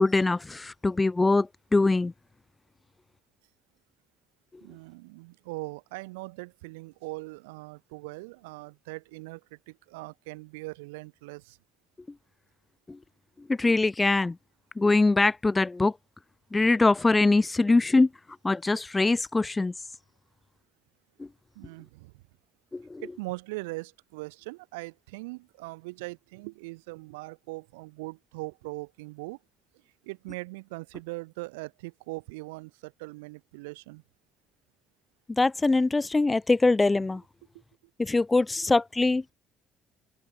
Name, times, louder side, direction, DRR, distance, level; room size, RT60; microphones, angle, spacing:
voice 1, 0.0-2.1 12.9-13.0 13.5-14.3 14.8-15.9 16.5-18.1 18.4-19.7 22.7-23.0 35.3-37.2 38.0-39.2, left 3 dB, 15° left, 1.2 m, -23 dB
voice 2, 4.6-11.6 21.5-22.2 23.0-29.4 30.0-34.0 38.6-38.7, right 24 dB, 65° right, 8.0 m, -40 dB
figure-of-eight pair, 50°, 0 cm